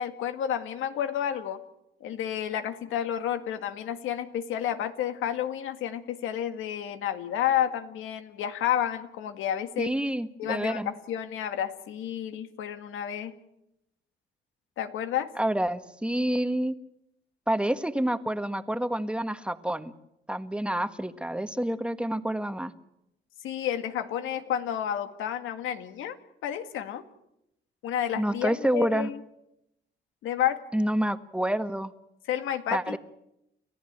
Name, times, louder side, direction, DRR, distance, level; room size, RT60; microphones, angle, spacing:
voice 1, 0.0-1.6 2.0-9.9 10.4-13.3 14.8-15.3 23.4-26.2 26.4-27.0 27.8-29.2 30.2-30.6 32.3-33.0, left 10 dB, 90° left, 8 dB, 2.0 m, -30 dB
voice 2, 9.8-10.9 15.4-16.8 17.5-19.9 20.3-22.7 28.2-29.1 30.7-31.9 32.7-33.0, right 1 dB, 5° right, 10 dB, 1.5 m, -28 dB
30.0 x 14.0 x 9.0 m, 0.85 s
cardioid pair, 90°, 20 cm